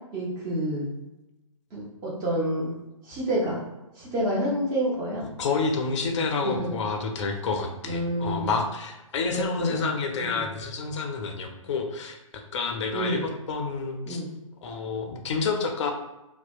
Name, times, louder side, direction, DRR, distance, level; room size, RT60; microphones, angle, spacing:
voice 1, 0.1-0.9 1.7-2.8 3.0-3.6 4.0-5.2 6.4-6.7 7.8-8.5 9.3-9.9 10.2-10.4 12.9-13.2 14.1-14.3, right 1 dB, 20° right, -5 dB, 0.6 m, -28 dB
voice 2, 5.4-14.2 14.6-15.9, left 4 dB, 55° left, 4 dB, 0.4 m, -29 dB
2.7 x 2.0 x 2.3 m, 0.99 s
figure-of-eight pair, 130°, 18 cm